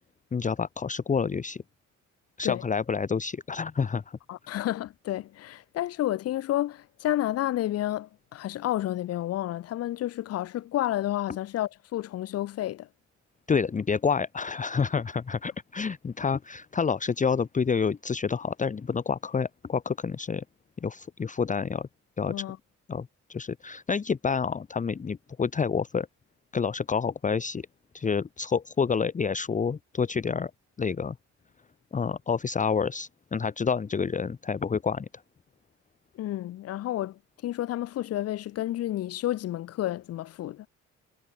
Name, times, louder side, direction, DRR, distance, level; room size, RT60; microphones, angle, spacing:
voice 1, 0.3-1.6 2.4-4.2 13.5-20.4 20.8-21.9 22.2-22.4 22.9-26.1 26.5-27.7 27.9-30.5 30.8-31.2 31.9-35.1, left 6 dB, 25° left, 0.8 m, -28 dB
voice 2, 4.3-12.9 22.3-22.6 36.1-40.7, left 13 dB, 55° left, 0.5 m, -30 dB
cardioid pair, 90°, 30 cm